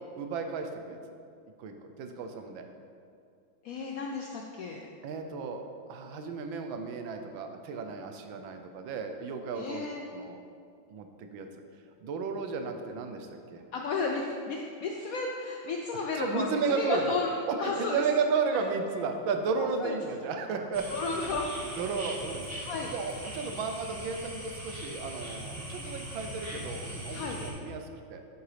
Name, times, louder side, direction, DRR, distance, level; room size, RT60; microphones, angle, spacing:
voice 1, 0.2-1.0 1.6-2.6 5.0-5.6 5.9-9.9 10.1-10.4 10.9-11.5 12.0-13.6 16.1-17.1 17.5-22.5 22.9-28.2, right 5 dB, 90° right, 6 dB, 1.5 m, -33 dB
voice 2, 3.6-4.9 9.6-10.0 13.7-17.3 17.6-18.0 19.8-19.9 20.9-21.5 22.6-22.9 27.1-27.4, left 4 dB, 75° left, 1 dB, 0.8 m, -33 dB
sound 1, 20.7-27.5, equal, 10° right, 1.1 m, -40 dB
8.8 x 7.1 x 3.3 m, 2.4 s
omnidirectional pair, 2.1 m